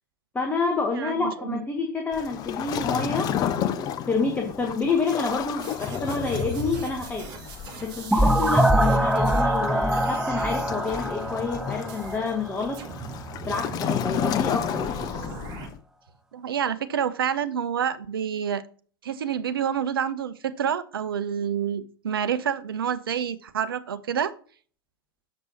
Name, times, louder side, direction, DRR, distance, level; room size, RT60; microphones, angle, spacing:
voice 1, 0.3-7.2 7.8-12.8 13.4-14.8, left 4 dB, 15° left, 2 dB, 1.0 m, -28 dB
voice 2, 0.9-1.6 16.3-18.6 19.0-24.3, right 8 dB, 70° right, 13 dB, 0.6 m, -28 dB
Waves surf, 2.1-15.8, left 9 dB, 30° left, 0.5 m, -32 dB
sound 1, 5.6-9.6 9.9-10.8 11.9-12.3 12.7-15.7, right 5 dB, 35° right, 1.6 m, -41 dB
sound 2, 8.1-12.8, right 1 dB, 5° right, 0.7 m, -23 dB
7.0 x 6.1 x 2.8 m, 0.43 s
figure-of-eight pair, 85°, 13 cm